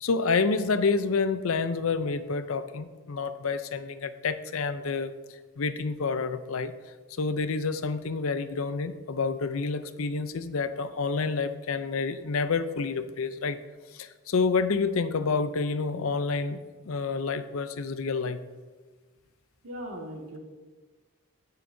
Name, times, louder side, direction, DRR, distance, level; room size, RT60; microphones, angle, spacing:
voice 1, 0.0-5.1 5.6-6.7 7.2-13.6 13.9-18.4, left 4 dB, 75° left, 12 dB, 0.5 m, -28 dB
voice 2, 19.6-20.4, equal, 85° right, 0 dB, 1.8 m, -38 dB
16.5 x 6.5 x 2.7 m, 1.4 s
head